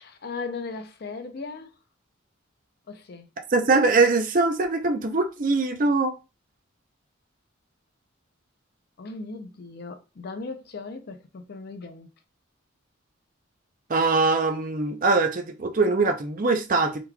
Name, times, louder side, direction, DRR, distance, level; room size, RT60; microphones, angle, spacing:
voice 1, 0.0-1.7 2.9-3.3 9.0-12.1, left 4 dB, 50° left, 0.5 m, -37 dB
voice 2, 3.5-6.1 13.9-17.0, right 3 dB, 45° right, 0.5 m, -22 dB
3.7 x 3.0 x 2.2 m
head